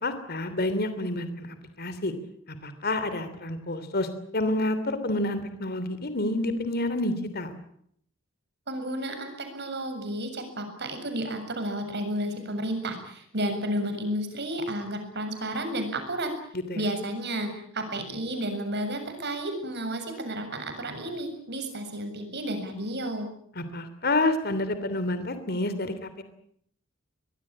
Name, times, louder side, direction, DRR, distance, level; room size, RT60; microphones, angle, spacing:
voice 1, 0.0-1.5 1.8-2.1 2.6-4.1 4.3-7.5 16.7-16.8 23.5-26.2, left 2 dB, 50° left, 11 dB, 3.1 m, -28 dB
voice 2, 8.7-16.3 16.7-23.3, right 1 dB, 55° right, 7 dB, 7.3 m, -32 dB
23.5 x 21.5 x 8.8 m, 0.68 s
head